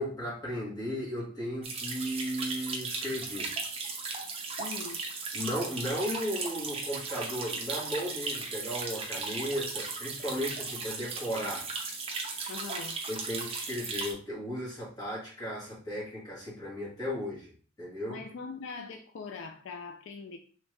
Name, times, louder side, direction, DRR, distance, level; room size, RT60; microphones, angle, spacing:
voice 1, 0.0-3.5 5.3-11.7 13.1-17.5 17.8-18.2, equal, 20° left, 1.5 m, -35 dB
sound 1, 1.6-14.1, right 4 dB, 30° right, 0.6 m, -36 dB
voice 2, 4.6-5.0 12.5-13.0 18.1-20.4, left 4 dB, 70° left, 0.4 m, -41 dB
3.2 x 2.6 x 3.2 m
head